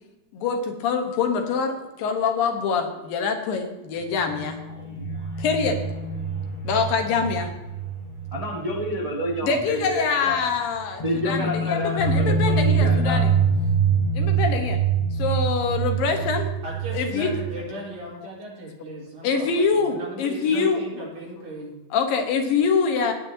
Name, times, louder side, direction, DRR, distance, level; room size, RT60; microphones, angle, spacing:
voice 1, 0.3-4.6 5.4-5.8 6.6-7.5 9.4-13.3 14.1-14.8 15.2-16.5 16.9-17.3 19.2-21.1 21.9-23.1, left 5 dB, 75° left, 5 dB, 3.0 m, -24 dB
sound 1, 4.0-9.4 9.7-9.8 11.0-17.6, right 5 dB, 45° left, 4.2 m, -25 dB
voice 2, 8.3-10.5 11.0-13.2, equal, 20° right, -1 dB, 0.9 m, -29 dB
voice 3, 16.6-21.7, right 1 dB, 70° right, -5 dB, 6.6 m, -37 dB
17.5 x 9.4 x 2.9 m, 1.1 s
omnidirectional pair, 4.2 m